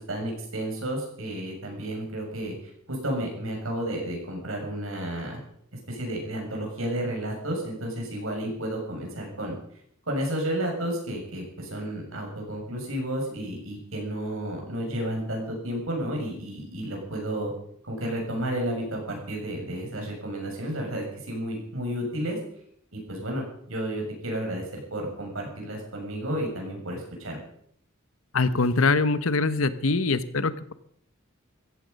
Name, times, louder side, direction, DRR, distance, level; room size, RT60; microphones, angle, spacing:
voice 1, 0.0-2.5 2.9-5.4 5.9-9.6 10.1-17.5 17.8-22.4 22.9-27.4, right 1 dB, 80° right, 1 dB, 6.9 m, -32 dB
voice 2, 28.3-30.7, left 3 dB, 85° left, 13 dB, 1.1 m, -23 dB
15.5 x 15.0 x 5.4 m, 0.68 s
head